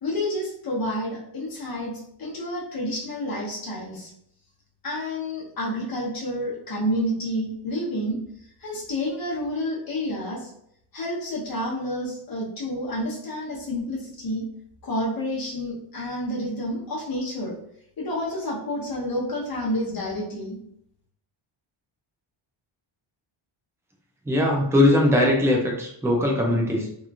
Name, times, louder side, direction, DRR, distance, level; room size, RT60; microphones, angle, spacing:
voice 1, 0.0-1.9 2.2-4.1 4.8-8.2 8.6-10.5 10.9-14.4 14.8-17.5 18.0-20.6, left 1 dB, 45° left, -4 dB, 1.0 m, -29 dB
voice 2, 24.3-26.9, left 1 dB, 5° right, -1 dB, 0.3 m, -20 dB
3.0 x 2.5 x 2.3 m, 0.71 s
wide cardioid pair, 155°, 50 cm